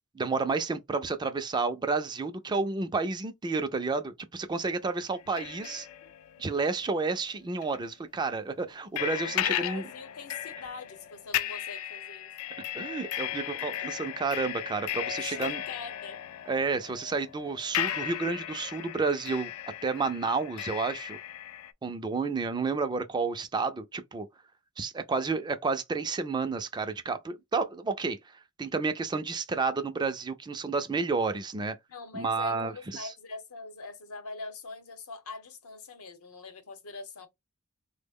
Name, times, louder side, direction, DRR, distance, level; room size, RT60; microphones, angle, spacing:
voice 1, 0.1-5.9 6.4-9.8 12.7-15.6 16.5-19.5 19.8-21.2 21.8-24.3 24.8-28.2 28.6-31.8 32.1-33.1, right 4 dB, 20° right, 0.3 m, -30 dB
sound 1, 5.1-7.2 7.6-7.8 9.0-21.7, left 11 dB, 70° left, 0.3 m, -36 dB
voice 2, 5.3-6.1 9.2-12.3 15.1-16.2 31.9-37.3, left 4 dB, 85° left, 0.8 m, -43 dB
3.4 x 2.1 x 3.5 m
head